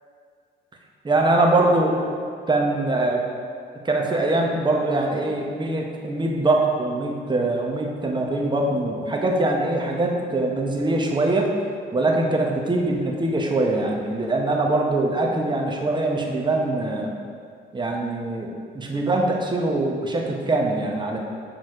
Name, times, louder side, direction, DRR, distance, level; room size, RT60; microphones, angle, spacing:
voice 1, 1.0-2.1 2.5-3.2 3.8-11.5 11.9-17.1 17.7-21.2, right 2 dB, 20° right, 0 dB, 1.0 m, -23 dB
6.3 x 4.1 x 5.0 m, 2.1 s
cardioid pair, 90°, 20 cm